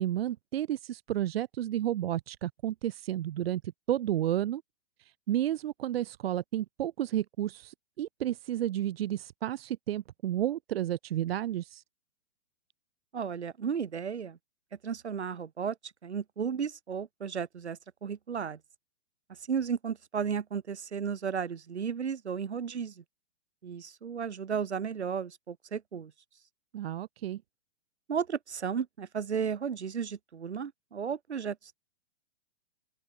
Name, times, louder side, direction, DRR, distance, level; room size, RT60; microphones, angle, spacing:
voice 1, 0.0-4.6 5.0-11.8 26.7-27.4, right 12 dB, 65° right, 0.6 m, -32 dB
voice 2, 13.1-14.4 14.8-15.8 16.0-18.6 19.5-23.0 23.6-26.1 28.1-31.8, right 7 dB, 80° right, 1.9 m, -34 dB
open air
hypercardioid pair, 120°, 33 cm